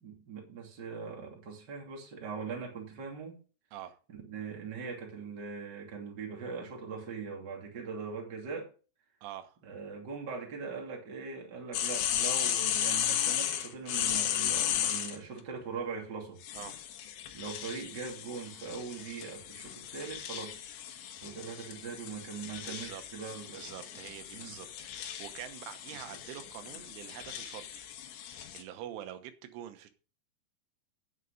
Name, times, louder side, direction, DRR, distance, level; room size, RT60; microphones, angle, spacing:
voice 1, 0.0-3.4 4.1-8.7 9.6-16.4 17.3-20.7 21.2-23.6 24.3-24.6 26.1-26.2, right 5 dB, 30° right, 2.5 m, -41 dB
voice 2, 9.2-9.6 16.5-16.8 22.7-23.0 23.5-24.7 24.9-27.8 28.2-29.9, right 11 dB, 90° right, 3.6 m, -45 dB
sound 1, 11.7-15.2 16.4-28.6, left 10 dB, 75° left, 3.4 m, -35 dB
9.7 x 8.3 x 5.0 m
omnidirectional pair, 5.4 m